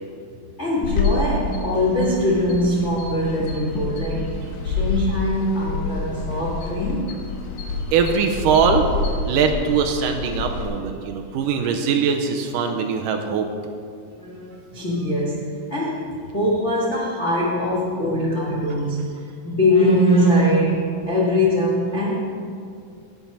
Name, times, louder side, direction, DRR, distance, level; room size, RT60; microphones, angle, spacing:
voice 1, 0.6-4.4 4.6-7.2 14.2-16.1 16.3-19.0 19.4-22.2, equal, 65° left, -5 dB, 0.6 m, -22 dB
sound 1, 0.8-10.7, left 3 dB, 80° left, 3.4 m, -28 dB
voice 2, 7.9-8.9 9.3-13.5, right 6 dB, 80° right, 4 dB, 2.1 m, -21 dB
17.0 x 5.9 x 5.4 m, 2.3 s
omnidirectional pair, 4.2 m